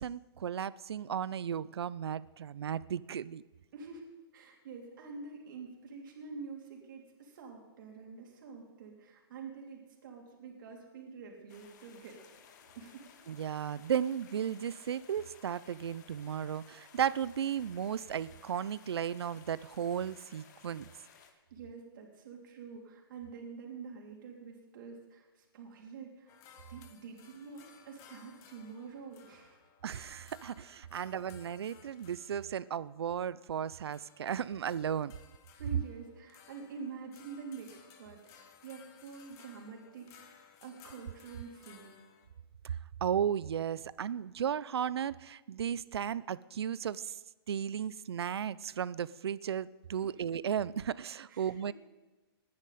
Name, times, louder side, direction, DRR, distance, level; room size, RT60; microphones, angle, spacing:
voice 1, 0.0-3.4 13.3-20.8 29.8-35.1 42.6-42.7 43.0-47.2 47.5-51.7, right 8 dB, 85° right, 19 dB, 0.5 m, -35 dB
voice 2, 4.3-12.2 12.7-13.1 21.2-26.3 26.7-29.6 30.9-31.2 35.6-42.0 49.9-50.1 51.3-51.7, right 5 dB, 55° right, 0 dB, 3.2 m, -47 dB
sound 1, 11.5-21.3, left 7 dB, 45° left, 1.6 m, -58 dB
sound 2, 26.3-42.3, left 8 dB, 25° left, 1.2 m, -59 dB
19.5 x 10.0 x 4.2 m, 1.1 s
hypercardioid pair, 160°, 13 cm